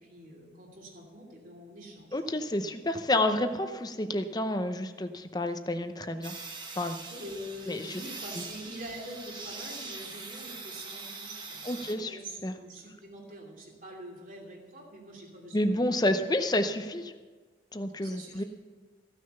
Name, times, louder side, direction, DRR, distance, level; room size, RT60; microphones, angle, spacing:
voice 1, 0.0-2.4 7.1-16.0 18.0-18.5, equal, 50° right, -2 dB, 2.7 m, -45 dB
voice 2, 2.1-6.3 6.8-7.0 7.7-8.0 8.4-8.5 11.7-12.5 15.5-17.1 17.7-18.4, left 1 dB, 20° left, 8 dB, 0.7 m, -29 dB
sound 1, 6.2-11.9, right 3 dB, 25° right, 1.2 m, -42 dB
15.0 x 6.4 x 6.8 m, 1.4 s
head